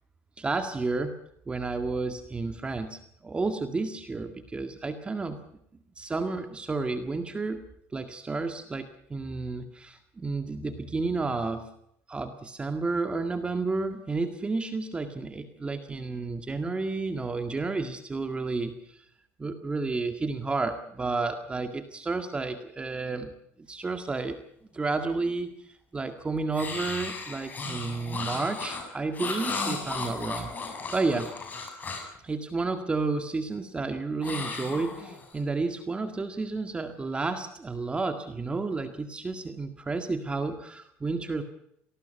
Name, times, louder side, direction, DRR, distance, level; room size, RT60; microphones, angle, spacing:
voice 1, 0.4-1.2 1.5-5.4 6.0-7.6 7.9-11.7 12.1-19.0 19.4-24.4 24.7-30.5 30.9-31.3 32.2-41.4, right 3 dB, 15° right, 7 dB, 1.9 m, -31 dB
sound 1, 26.5-32.2 34.2-35.4, left 4 dB, 30° left, 7.9 m, -35 dB
26.0 x 19.5 x 5.6 m, 0.74 s
cardioid pair, 125°, 6 cm